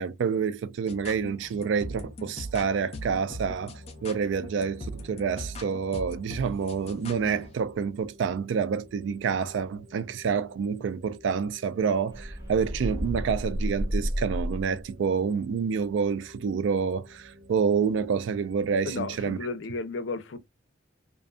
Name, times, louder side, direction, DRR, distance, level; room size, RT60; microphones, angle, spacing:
voice 1, 0.0-19.4, right 6 dB, 80° right, 0.3 m, -28 dB
sound 1, 0.9-7.5, equal, 35° left, 0.5 m, -41 dB
sound 2, 3.7-19.3, equal, 40° right, 1.2 m, -53 dB
sound 3, 12.1-14.9, equal, 20° right, 0.5 m, -31 dB
voice 2, 18.9-20.4, left 3 dB, 90° left, 0.5 m, -33 dB
2.5 x 2.4 x 2.3 m
head